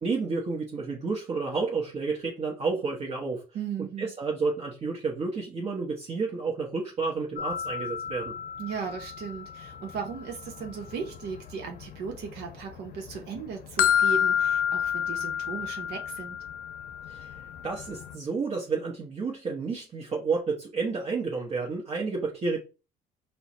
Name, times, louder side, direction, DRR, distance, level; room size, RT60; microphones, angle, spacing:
voice 1, 0.0-3.4 4.0-8.3 17.1-17.4 17.6-22.6, right 4 dB, 40° right, 1.1 m, -30 dB
voice 2, 3.5-4.1 8.6-16.4, right 6 dB, 75° right, 1.0 m, -37 dB
sound 1, 7.4-12.5 12.8-18.1, left 9 dB, 70° left, 0.7 m, -30 dB
4.5 x 2.2 x 4.2 m
cardioid pair, 110°, 17 cm